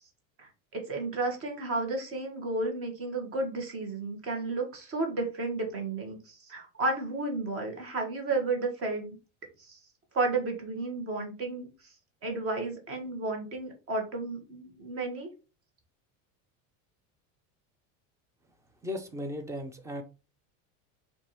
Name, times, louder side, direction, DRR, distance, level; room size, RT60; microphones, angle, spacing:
voice 1, 0.4-9.1 9.7-9.8 10.1-11.7 12.2-15.3, right 3 dB, 35° right, 2 dB, 1.4 m, -32 dB
voice 2, 18.8-20.0, left 1 dB, 10° right, 7 dB, 0.4 m, -36 dB
4.5 x 2.7 x 3.0 m, 0.32 s
supercardioid pair, 140°, 38 cm